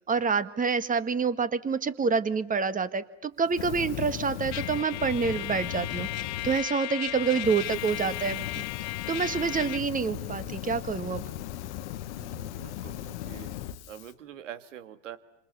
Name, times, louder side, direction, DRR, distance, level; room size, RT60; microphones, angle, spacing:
voice 1, 0.1-8.5 9.1-11.2, right 5 dB, 20° right, 13 dB, 1.7 m, -27 dB
Fire, 3.5-6.6 7.1-14.1, left 12 dB, 65° left, 1.3 m, -37 dB
Trumpet, 4.5-9.8, left 17 dB, 45° left, 1.1 m, -36 dB
voice 2, 12.2-13.5 13.9-15.2, right 10 dB, 75° right, 11 dB, 2.2 m, -45 dB
28.5 x 27.0 x 7.0 m, 0.88 s
hypercardioid pair, 85°, 37 cm